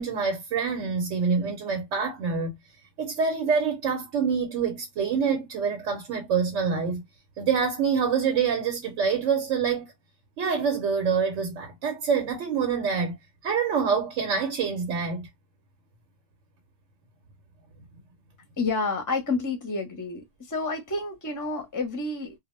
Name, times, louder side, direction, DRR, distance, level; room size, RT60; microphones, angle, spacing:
voice 1, 0.0-2.6 3.0-7.1 7.4-9.9 10.4-13.2 13.4-15.3, right 6 dB, 85° right, 1.0 m, -26 dB
voice 2, 18.6-22.3, left 3 dB, 20° left, 0.6 m, -29 dB
2.2 x 2.1 x 3.0 m
omnidirectional pair, 1.2 m